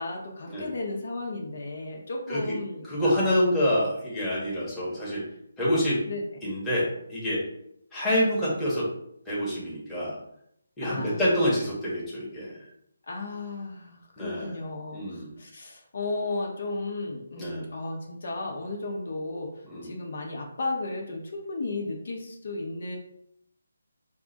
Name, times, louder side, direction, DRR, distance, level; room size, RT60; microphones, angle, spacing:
voice 1, 0.0-3.2 6.1-6.2 10.8-11.4 13.1-19.5 19.8-23.0, left 2 dB, 60° left, 0 dB, 1.0 m, -34 dB
voice 2, 2.8-5.2 5.6-6.0 6.4-7.4 7.9-8.9 9.3-10.2 10.8-12.6 14.2-14.6 14.9-15.3 17.4-17.7 19.6-19.9, equal, 5° left, -9 dB, 1.1 m, -27 dB
4.7 x 2.4 x 4.0 m, 0.72 s
hypercardioid pair, 165°, 0 cm